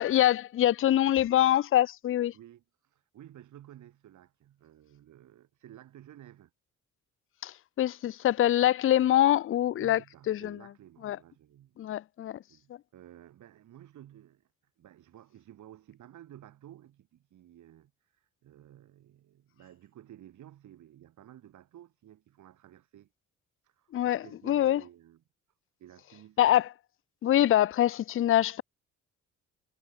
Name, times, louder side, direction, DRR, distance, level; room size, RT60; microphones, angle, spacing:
voice 1, 0.0-2.3 7.4-10.0 10.3-10.6 11.0-11.2 11.8-12.4 23.9-24.8 26.4-26.7 27.2-28.6, left 12 dB, 45° left, 0.5 m, -24 dB
voice 2, 2.3-6.5 9.8-11.8 12.5-23.1 23.6-25.2 25.8-26.6, right 12 dB, 75° right, 6.5 m, -53 dB
cardioid pair, 90°, 30 cm